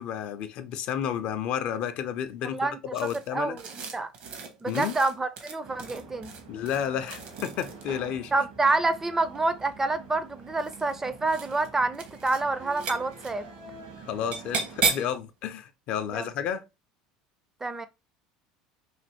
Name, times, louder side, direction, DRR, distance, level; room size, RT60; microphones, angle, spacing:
voice 1, 0.0-3.6 4.7-4.9 6.5-8.3 14.1-16.6, left 9 dB, 60° left, 0.4 m, -31 dB
voice 2, 2.4-2.8 3.3-3.6 3.9-4.1 4.6-6.4 8.3-13.5 16.1-16.3 17.6-17.9, right 3 dB, 15° right, 0.4 m, -27 dB
sound 1, 3.0-8.0 9.2-9.9 10.5-11.0 11.2-11.7 11.9-12.4 12.7-13.3 14.3-15.2, right 5 dB, 60° right, 0.8 m, -34 dB
sound 2, 5.6-14.8, right 4 dB, 80° right, 1.3 m, -47 dB
3.1 x 2.6 x 2.7 m
hypercardioid pair, 85°, 2 cm